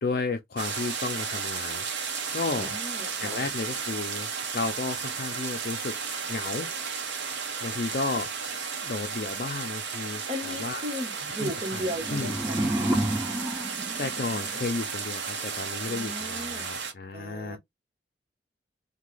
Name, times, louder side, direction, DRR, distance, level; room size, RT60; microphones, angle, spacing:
voice 1, 0.0-2.8 3.2-5.9 6.3-6.7 7.6-10.8 11.2-12.4 14.0-17.6, left 3 dB, 55° left, 0.4 m, -33 dB
sound 1, 0.6-16.9, right 6 dB, 80° right, 0.9 m, -34 dB
voice 2, 2.5-3.4 10.3-12.6 15.9-16.7 17.1-17.6, equal, 35° right, 1.0 m, -36 dB
sound 2, 11.6-14.8, right 1 dB, 15° right, 0.5 m, -30 dB
2.8 x 2.3 x 3.2 m
head